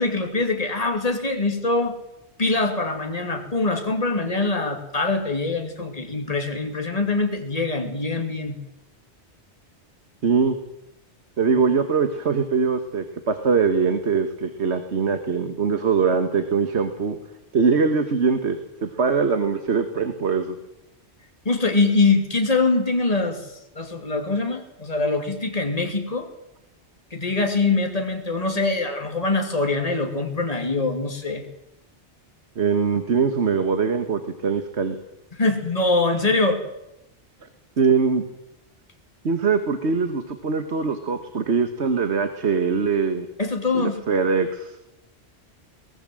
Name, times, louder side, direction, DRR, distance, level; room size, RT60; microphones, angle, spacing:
voice 1, 0.0-2.0 2.4-8.6 21.4-26.3 27.1-31.4 35.3-36.6 43.4-44.0, left 3 dB, 35° left, 4 dB, 2.7 m, -23 dB
voice 2, 10.2-10.6 11.4-17.2 17.5-20.6 32.6-35.0 37.8-38.2 39.2-43.3 43.7-44.8, right 5 dB, 75° right, 9 dB, 1.7 m, -22 dB
23.0 x 19.0 x 7.7 m, 0.89 s
omnidirectional pair, 1.2 m